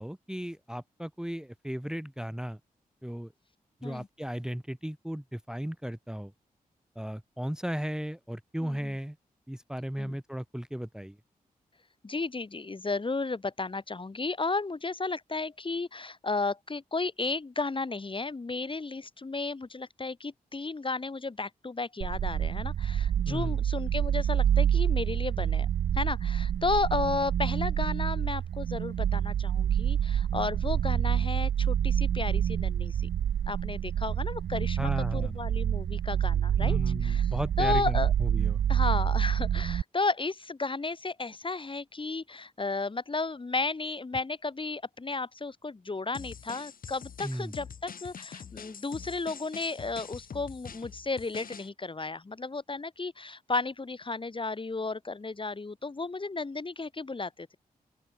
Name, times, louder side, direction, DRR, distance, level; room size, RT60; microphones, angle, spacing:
voice 1, 0.0-2.6 3.0-3.3 3.8-6.3 7.0-9.2 9.5-11.2 23.3-23.6 34.8-35.4 36.6-38.6 47.2-47.5, equal, 5° right, 0.9 m, -35 dB
voice 2, 8.6-8.9 10.0-10.2 12.0-25.7 25.9-33.1 33.5-38.1 38.7-57.6, left 3 dB, 35° left, 1.4 m, -33 dB
sound 1, 22.0-39.8, right 9 dB, 75° right, 0.6 m, -27 dB
sound 2, 46.1-51.7, left 7 dB, 70° left, 1.8 m, -44 dB
open air
cardioid pair, 50°, 15 cm